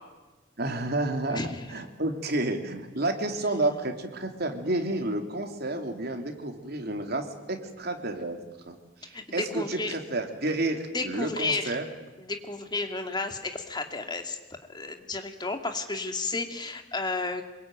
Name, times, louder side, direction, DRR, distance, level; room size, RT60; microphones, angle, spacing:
voice 1, 0.6-8.4 8.7-8.8 9.0-11.9, right 2 dB, 55° right, 4 dB, 3.3 m, -30 dB
voice 2, 1.3-1.6 9.1-10.0 10.9-11.8 12.2-14.4 14.7-17.4, left 3 dB, 25° left, 5 dB, 2.5 m, -32 dB
26.0 x 23.0 x 9.2 m, 1.2 s
head